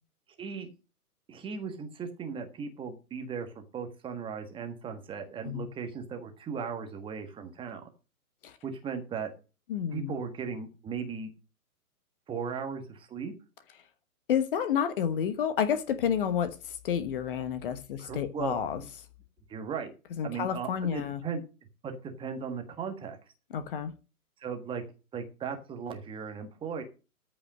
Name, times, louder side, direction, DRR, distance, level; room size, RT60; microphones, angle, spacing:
voice 1, 0.4-0.7 1.3-7.8 8.6-9.3 9.9-11.3 12.3-13.3 18.0-18.9 19.5-19.9 20.2-21.4 21.8-23.2 24.4-24.8 25.1-26.8, right 6 dB, 10° right, 1.4 m, -37 dB
voice 2, 9.7-10.1 14.3-16.5 16.8-18.8 20.2-21.2 23.5-23.9, left 8 dB, 35° left, 1.2 m, -30 dB
14.0 x 5.6 x 6.4 m
figure-of-eight pair, 125°, 45 cm